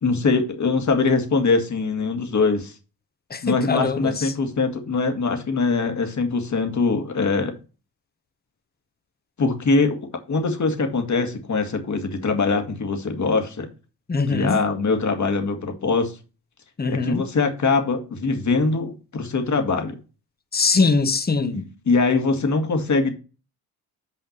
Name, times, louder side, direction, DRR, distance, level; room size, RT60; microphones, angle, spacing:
voice 1, 0.0-2.7 3.4-7.6 9.4-10.0 10.3-13.7 14.3-16.2 16.9-20.0 21.9-23.1, left 4 dB, 40° left, 1.9 m, -22 dB
voice 2, 3.3-4.3 14.1-14.6 16.8-17.2 20.5-21.7, left 4 dB, 20° left, 1.1 m, -22 dB
5.8 x 5.1 x 6.5 m
supercardioid pair, 60°, 45 cm